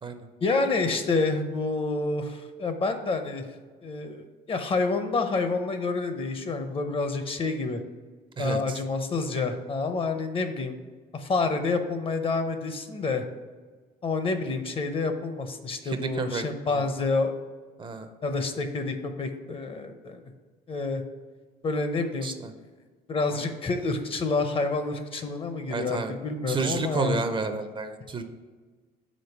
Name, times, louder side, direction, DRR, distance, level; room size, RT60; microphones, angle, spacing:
voice 1, 0.4-3.4 3.8-7.8 8.4-10.8 11.1-13.2 14.0-17.3 18.2-20.2 20.7-21.0 21.6-22.3 23.1-27.2, left 3 dB, 35° left, 7 dB, 0.6 m, -28 dB
voice 2, 8.4-8.8 15.8-16.8 17.8-18.1 22.2-22.5 23.3-23.4 25.7-26.1 26.5-28.2, right 4 dB, 30° right, 8 dB, 0.5 m, -31 dB
5.1 x 3.8 x 5.8 m, 1.4 s
cardioid pair, 110°, 17 cm